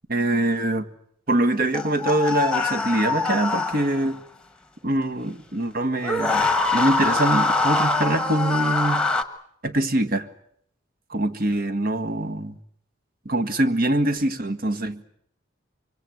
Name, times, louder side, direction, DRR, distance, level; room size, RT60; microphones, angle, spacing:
voice 1, 0.1-0.9 1.3-4.2 4.8-9.0 9.6-10.3 11.1-12.5 13.2-15.1, right 1 dB, 50° right, 1.7 m, -24 dB
sound 1, 1.7-4.1 6.0-9.2, left 3 dB, 5° left, 1.3 m, -23 dB
24.5 x 24.5 x 7.9 m
head